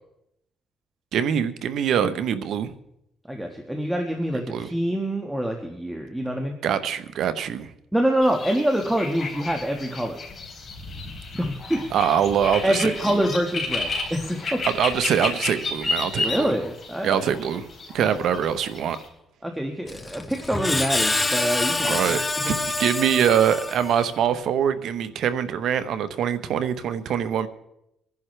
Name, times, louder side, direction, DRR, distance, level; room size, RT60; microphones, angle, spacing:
voice 1, 1.1-2.7 4.5-4.7 6.6-7.7 11.9-13.3 14.6-16.5 17.0-17.7 17.9-19.0 21.8-27.5, right 8 dB, 75° right, 1.0 m, -24 dB
voice 2, 3.3-6.6 7.9-10.2 11.3-11.9 12.6-14.6 16.2-17.2 19.4-22.2 22.4-22.5, equal, 5° right, 1.7 m, -25 dB
sound 1, 8.2-19.1, left 3 dB, 40° left, 4.0 m, -32 dB
Screech, 19.9-24.2, left 2 dB, 20° left, 1.0 m, -26 dB
24.5 x 11.0 x 3.4 m
cardioid pair, 90°, 0 cm